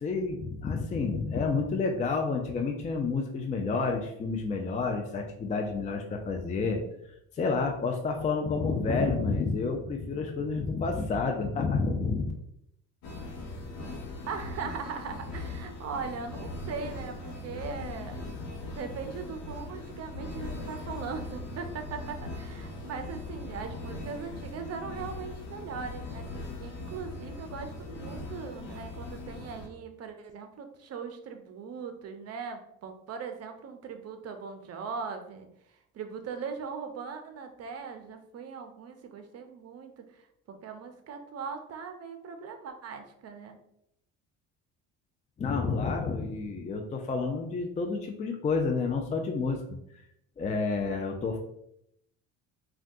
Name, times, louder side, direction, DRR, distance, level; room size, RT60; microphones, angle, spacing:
voice 1, 0.0-6.8 7.3-12.3 45.4-49.6 50.4-51.4, left 4 dB, 20° left, 3 dB, 0.4 m, -29 dB
sound 1, 13.0-29.7, left 2 dB, 70° left, 0.8 m, -40 dB
voice 2, 14.3-18.2 18.6-35.5 35.9-43.6, right 5 dB, 45° right, 6 dB, 0.6 m, -40 dB
3.4 x 2.3 x 2.6 m, 0.76 s
supercardioid pair, 70°, 36 cm